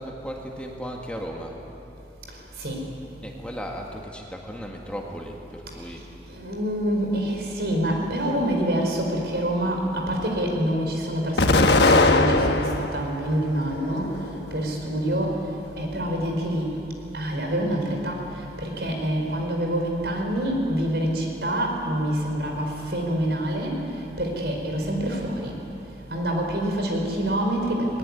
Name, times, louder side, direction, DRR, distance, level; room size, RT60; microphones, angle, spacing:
voice 1, 0.0-1.6 3.2-6.0, equal, 5° left, 0 dB, 1.8 m, -36 dB
voice 2, 6.3-14.1 14.5-15.4 15.8-16.7 17.1-18.2 18.6-23.8 24.2-25.6 26.1-28.0, right 1 dB, 70° right, 1 dB, 4.7 m, -26 dB
Explosion, 11.4-13.0 13.6-14.4, left 2 dB, 80° left, 1.3 m, -20 dB
20.5 x 19.5 x 9.7 m, 2.9 s
head